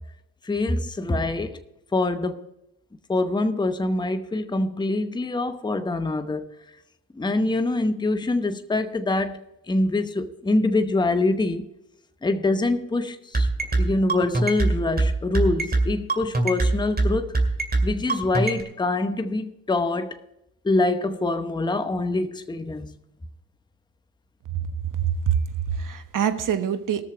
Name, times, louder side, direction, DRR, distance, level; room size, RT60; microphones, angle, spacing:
voice 1, 0.4-1.6 1.9-2.4 3.1-6.5 7.2-11.7 12.2-13.5 13.8-17.4 17.8-20.2 20.6-22.9, left 2 dB, 10° left, 0.8 m, -25 dB
sound 1, 13.3-18.6, right 2 dB, 25° right, 2.2 m, -21 dB
voice 2, 24.5-25.4 25.7-27.0, right 8 dB, 50° right, 1.2 m, -25 dB
18.5 x 6.6 x 4.4 m
supercardioid pair, 65°, 40 cm